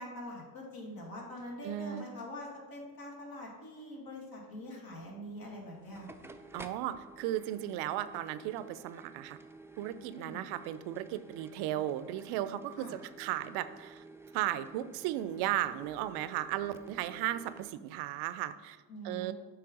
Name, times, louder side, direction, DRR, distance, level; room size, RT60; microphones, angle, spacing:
voice 1, 0.0-6.1 10.1-10.4 12.8-13.0 18.9-19.3, left 1 dB, 60° left, -1 dB, 2.1 m, -44 dB
voice 2, 1.6-2.0 6.5-9.4 9.8-14.0 14.3-18.8 19.0-19.3, right 13 dB, 70° right, 14 dB, 0.5 m, -35 dB
sound 1, 5.6-17.7, right 3 dB, 5° right, 0.5 m, -52 dB
7.7 x 3.4 x 5.1 m, 1.3 s
hypercardioid pair, 60°, 41 cm